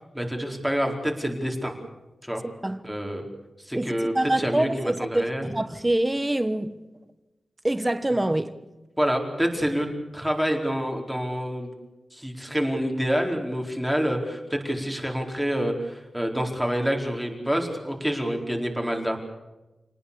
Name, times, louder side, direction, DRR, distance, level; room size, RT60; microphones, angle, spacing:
voice 1, 0.1-1.7 2.2-2.4 2.8-3.2 3.6-5.5 9.0-11.7 12.1-19.2, equal, ahead, 4.6 m, -27 dB
voice 2, 3.7-6.8 7.6-8.6, right 1 dB, 15° right, 1.3 m, -25 dB
28.0 x 19.5 x 7.1 m
wide cardioid pair, 95°, 0 cm